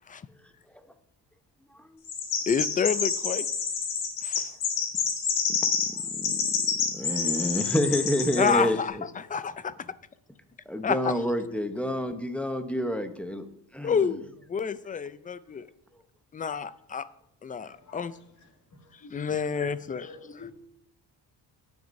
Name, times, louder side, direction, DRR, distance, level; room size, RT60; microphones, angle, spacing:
Chirp tweet, 2.0-8.6, left 6 dB, 85° left, 3.7 m, -28 dB
voice 1, 2.5-3.5 4.2-4.4 8.4-9.0 9.3-9.7 10.8-11.1 13.8-15.7 16.3-17.1 17.4-18.1 19.1-20.5, left 6 dB, 20° left, 0.3 m, -29 dB
voice 2, 5.5-9.1 10.7-13.5 13.7-14.1, equal, 5° left, 0.8 m, -29 dB
voice 3, 17.6-18.1 19.0-19.2 19.5-19.7 20.0-20.5, left 4 dB, 45° left, 2.1 m, -47 dB
18.0 x 9.5 x 2.6 m
cardioid pair, 150°, 41 cm